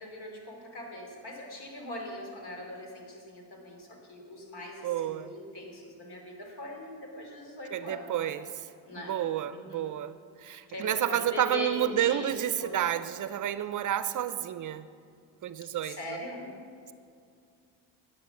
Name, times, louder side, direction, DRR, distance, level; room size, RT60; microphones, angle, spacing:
voice 1, 0.0-8.3 8.9-9.1 9.5-9.8 10.7-12.3 12.6-12.8 15.8-16.5, left 1 dB, 60° left, 1 dB, 3.3 m, -41 dB
voice 2, 4.8-5.3 7.7-8.7 9.0-14.9 15.4-16.2, right 11 dB, 45° right, 13 dB, 0.6 m, -30 dB
12.0 x 8.7 x 7.2 m, 2.3 s
supercardioid pair, 75°, 43 cm